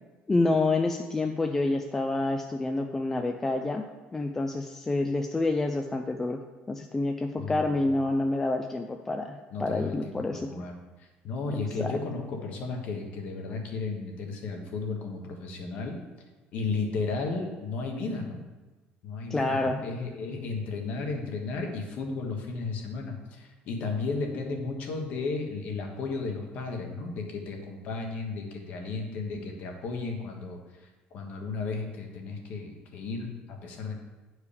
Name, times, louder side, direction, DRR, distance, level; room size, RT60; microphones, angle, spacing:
voice 1, 0.3-3.8 4.1-6.4 6.7-10.6 11.8-12.0 19.3-19.8, left 2 dB, 10° left, 4 dB, 0.3 m, -28 dB
voice 2, 7.4-7.8 9.5-16.0 16.5-18.4 19.0-30.6 31.1-33.9, left 3 dB, 45° left, 2 dB, 1.3 m, -34 dB
9.8 x 4.8 x 5.1 m, 1.2 s
cardioid pair, 180°, 4 cm